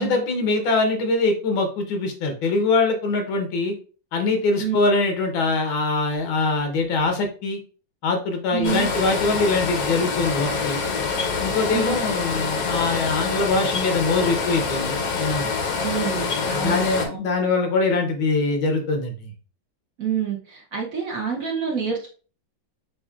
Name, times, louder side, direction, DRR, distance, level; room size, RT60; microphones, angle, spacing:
voice 1, 0.0-3.7 4.1-7.6 8.0-10.8 11.4-15.5 16.4-19.3, left 3 dB, 85° left, 4 dB, 1.8 m, -23 dB
voice 2, 8.5-8.9 11.7-12.0 15.8-17.2 20.0-22.1, right 7 dB, 55° right, 0 dB, 1.0 m, -27 dB
sound 1, 8.6-17.1, left 4 dB, 60° left, 1.0 m, -26 dB
7.1 x 2.6 x 2.4 m, 0.39 s
omnidirectional pair, 2.1 m